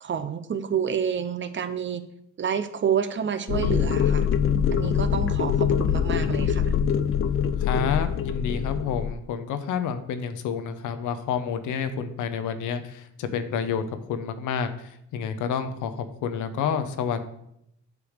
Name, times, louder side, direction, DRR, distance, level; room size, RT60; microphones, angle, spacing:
voice 1, 0.0-2.0 2.4-4.3 4.7-6.7, right 7 dB, 40° right, 11 dB, 0.7 m, -28 dB
sound 1, 3.5-9.1, left 8 dB, 45° left, 0.4 m, -24 dB
voice 2, 7.6-17.3, left 7 dB, 85° left, 9 dB, 0.8 m, -29 dB
8.4 x 3.4 x 6.4 m, 0.76 s
cardioid pair, 90°, 30 cm